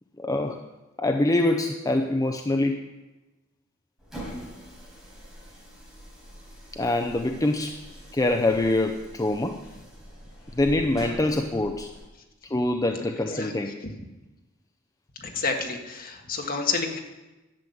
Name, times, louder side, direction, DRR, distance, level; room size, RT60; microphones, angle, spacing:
voice 1, 0.2-0.6 1.0-2.8 6.8-7.8 8.1-9.6 10.5-11.9 12.5-13.8, left 2 dB, 15° left, 4 dB, 0.5 m, -24 dB
sound 1, 4.0-12.1, equal, ahead, 4.3 m, -44 dB
voice 2, 15.1-17.0, left 4 dB, 45° left, 3 dB, 1.6 m, -29 dB
11.5 x 7.4 x 7.8 m, 1.1 s
head